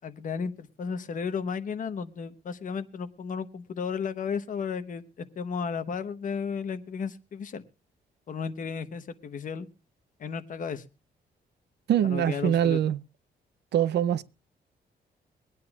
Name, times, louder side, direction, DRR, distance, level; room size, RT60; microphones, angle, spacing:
voice 1, 0.0-7.6 8.3-9.7 10.2-10.8 12.0-12.8, left 6 dB, 50° left, 1.0 m, -34 dB
voice 2, 11.9-13.0 13.7-14.2, right 10 dB, 90° right, 0.6 m, -23 dB
23.5 x 9.4 x 2.3 m
wide cardioid pair, 160°, 17 cm